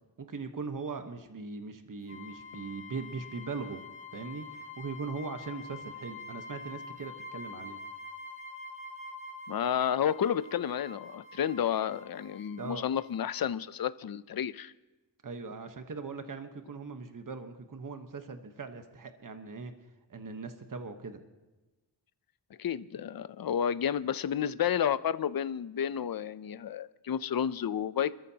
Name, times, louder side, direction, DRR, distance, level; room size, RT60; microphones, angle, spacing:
voice 1, 0.2-3.8 4.1-7.8 12.6-12.8 15.2-19.7 20.1-21.2, right 4 dB, 45° right, 7 dB, 1.1 m, -40 dB
sound 1, 2.1-13.5, left 3 dB, 30° left, 1.6 m, -46 dB
voice 2, 9.5-14.7 22.6-28.1, left 9 dB, 55° left, 15 dB, 0.6 m, -31 dB
26.5 x 14.0 x 2.9 m, 1.2 s
wide cardioid pair, 90°, 44 cm